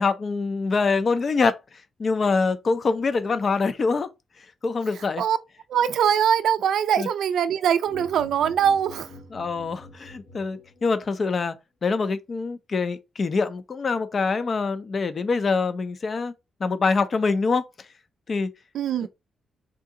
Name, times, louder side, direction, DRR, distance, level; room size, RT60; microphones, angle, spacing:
voice 1, 0.0-1.6 2.0-4.1 4.6-5.2 7.0-7.1 9.3-11.5 11.8-16.3 16.6-17.6 18.3-18.5 19.0-19.1, left 4 dB, 40° left, 0.5 m, -24 dB
voice 2, 4.9-5.4 5.7-9.2 18.7-19.1, right 8 dB, 80° right, 0.3 m, -22 dB
sound 1, 7.8-11.1, left 2 dB, 75° left, 1.9 m, -45 dB
3.7 x 2.7 x 3.7 m
wide cardioid pair, 145°, 0 cm